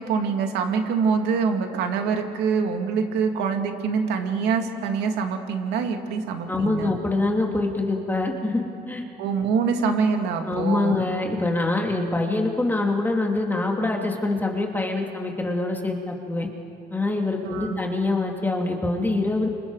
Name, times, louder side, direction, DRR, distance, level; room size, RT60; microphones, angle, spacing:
voice 1, 0.0-6.9 9.2-11.0 17.4-17.8, right 5 dB, 85° right, 4 dB, 2.4 m, -25 dB
voice 2, 6.5-9.0 10.5-16.5 16.9-19.5, left 2 dB, 10° left, 1 dB, 2.5 m, -25 dB
29.5 x 26.0 x 4.9 m, 2.7 s
cardioid pair, 110°, 17 cm